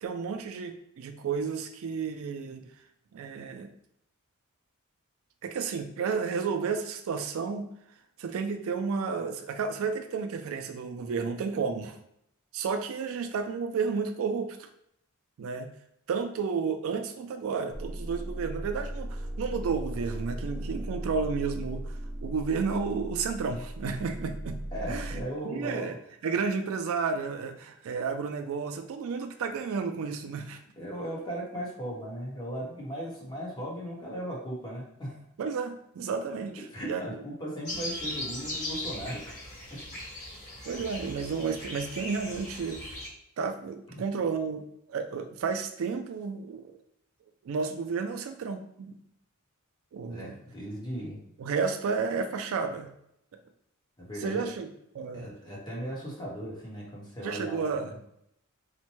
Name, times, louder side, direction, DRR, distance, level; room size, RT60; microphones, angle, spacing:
voice 1, 0.0-2.7 3.1-3.7 5.4-7.7 8.2-12.0 12.5-14.7 15.4-15.7 16.1-24.6 24.9-25.9 26.2-30.6 35.4-37.0 40.6-43.0 43.4-46.8 47.4-48.9 49.9-50.3 51.4-52.9 54.2-54.7 54.9-55.3 57.2-58.0, right 5 dB, 65° right, 6 dB, 0.3 m, -32 dB
sound 1, 17.7-25.2, right 1 dB, 5° right, 0.7 m, -37 dB
voice 2, 24.7-25.9 30.8-35.2 36.7-39.4 43.9-44.0 50.1-51.2 54.0-54.4 55.1-58.0, right 1 dB, 20° left, -4 dB, 1.0 m, -37 dB
sound 2, 37.6-43.1, left 1 dB, 35° left, 1.3 m, -38 dB
4.2 x 2.1 x 3.0 m, 0.74 s
head